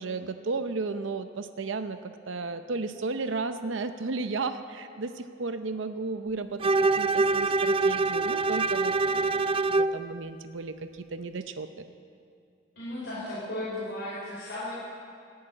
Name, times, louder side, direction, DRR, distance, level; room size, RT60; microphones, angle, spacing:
voice 1, 0.0-11.8, right 3 dB, 80° right, 9 dB, 0.7 m, -34 dB
Bowed string instrument, 6.6-10.0, right 3 dB, 30° right, 0.4 m, -25 dB
voice 2, 12.7-14.7, left 1 dB, 65° left, -10 dB, 4.7 m, -35 dB
17.0 x 8.8 x 8.8 m, 2.4 s
head